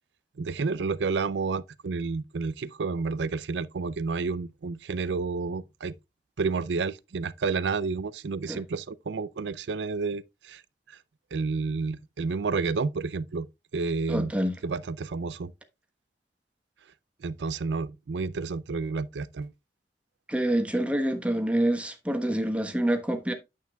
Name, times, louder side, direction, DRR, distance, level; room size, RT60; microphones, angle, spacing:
voice 1, 0.4-5.9 6.4-10.6 10.9-11.0 11.3-13.5 13.7-14.3 14.6-15.5 17.2-19.5, right 4 dB, 75° right, 0.5 m, -30 dB
voice 2, 14.1-14.5 20.3-23.3, right 1 dB, 5° right, 1.2 m, -26 dB
9.3 x 8.3 x 2.3 m
head